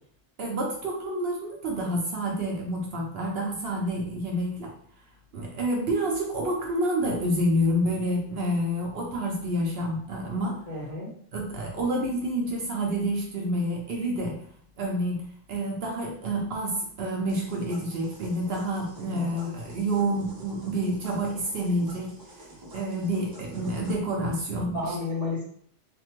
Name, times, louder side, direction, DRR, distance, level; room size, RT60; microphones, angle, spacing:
voice 1, 0.4-4.7 5.3-10.5 11.3-14.4 14.8-15.2 15.5-22.5 22.7-24.9, right 1 dB, 60° right, -1 dB, 0.8 m, -28 dB
voice 2, 10.7-11.1 19.0-19.3 24.7-25.4, left 3 dB, 35° left, -5 dB, 0.8 m, -32 dB
sound 1, 17.3-23.9, right 1 dB, 25° right, 0.5 m, -48 dB
3.2 x 2.1 x 3.0 m, 0.63 s
omnidirectional pair, 1.2 m